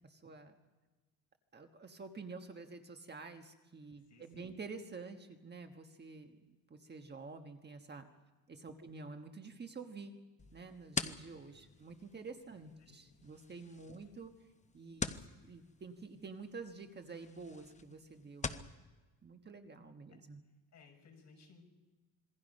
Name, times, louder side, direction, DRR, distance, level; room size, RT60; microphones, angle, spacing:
voice 1, 0.0-0.6 1.5-6.4 6.7-8.0 8.5-10.1 10.5-14.3 14.7-15.2 15.5-18.7 19.2-20.4, right 4 dB, 30° right, 5 dB, 1.4 m, -49 dB
voice 2, 4.0-4.5 8.7-8.9 11.4-11.8 12.8-13.0 13.9-14.1 20.1-20.2 20.7-21.6, left 5 dB, 50° left, 1 dB, 6.1 m, -62 dB
sound 1, 10.4-18.7, left 4 dB, 20° left, 0.8 m, -45 dB
26.5 x 22.0 x 5.4 m, 1.2 s
cardioid pair, 130°, 35 cm